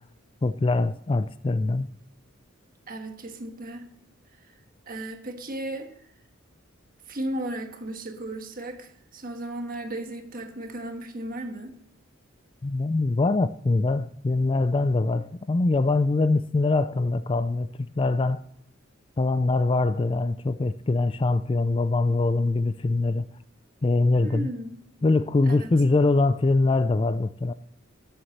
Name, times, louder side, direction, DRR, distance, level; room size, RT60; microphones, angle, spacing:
voice 1, 0.4-1.9 12.6-17.7 18.0-18.4 19.2-23.2 23.8-24.5 25.0-27.5, left 3 dB, 25° left, 0.3 m, -23 dB
voice 2, 2.9-3.9 4.5-4.6 4.9-6.1 7.1-11.8 24.2-24.8 25.5-25.7, right 1 dB, 45° right, 1.4 m, -35 dB
12.5 x 7.9 x 4.2 m
head